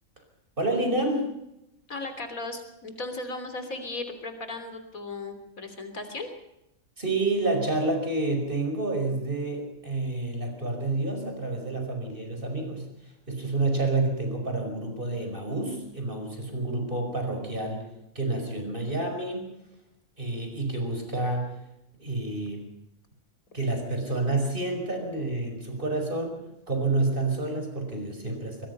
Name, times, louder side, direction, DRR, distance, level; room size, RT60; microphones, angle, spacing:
voice 1, 0.6-1.3 7.0-12.9 13.3-17.8 18.2-19.5 20.2-21.5 22.0-22.7 23.5-26.4 26.7-28.7, right 2 dB, 40° right, 4 dB, 5.5 m, -29 dB
voice 2, 1.9-6.3, left 2 dB, 80° left, 7 dB, 3.7 m, -36 dB
24.0 x 21.0 x 5.6 m, 0.86 s
omnidirectional pair, 1.4 m